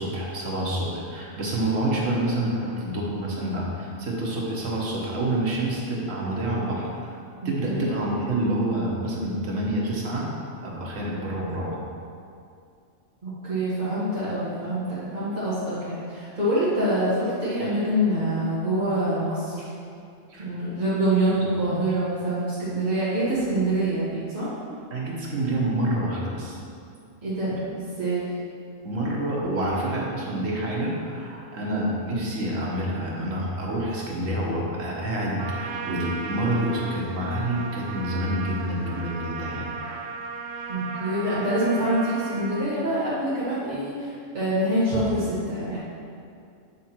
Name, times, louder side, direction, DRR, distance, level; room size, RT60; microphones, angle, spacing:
voice 1, 0.0-7.2 7.4-10.3 10.6-11.8 20.3-20.5 21.4-21.5 24.9-26.6 28.8-39.7, right 1 dB, 90° right, -4 dB, 1.6 m, -27 dB
voice 2, 13.2-19.7 20.4-24.5 27.2-28.3 40.7-45.8, right 1 dB, 40° right, -13 dB, 1.8 m, -25 dB
Trumpet, 35.4-42.7, right 5 dB, 60° right, 0.5 m, -36 dB
8.4 x 3.7 x 4.4 m, 2.4 s
omnidirectional pair, 1.3 m